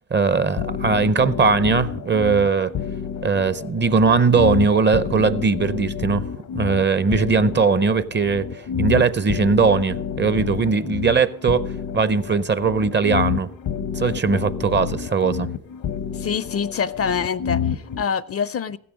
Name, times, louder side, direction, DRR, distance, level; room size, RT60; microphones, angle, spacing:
voice 1, 0.1-2.7 3.2-6.3 6.5-13.5 13.9-15.5, right 5 dB, 30° right, 0.6 m, -20 dB
sound 1, 0.6-18.0, left 7 dB, 80° left, 0.9 m, -29 dB
voice 2, 16.1-18.8, left 6 dB, 45° left, 0.5 m, -25 dB
15.5 x 7.1 x 6.2 m
cardioid pair, 65°, 35 cm